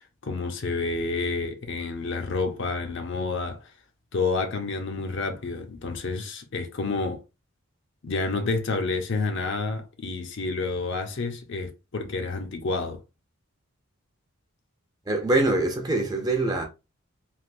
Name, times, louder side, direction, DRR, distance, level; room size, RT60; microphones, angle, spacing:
voice 1, 0.0-3.7 4.1-7.2 8.0-13.0, left 3 dB, 55° left, 0.6 m, -29 dB
voice 2, 15.1-16.6, right 2 dB, 15° right, 0.5 m, -24 dB
3.3 x 2.5 x 2.5 m
head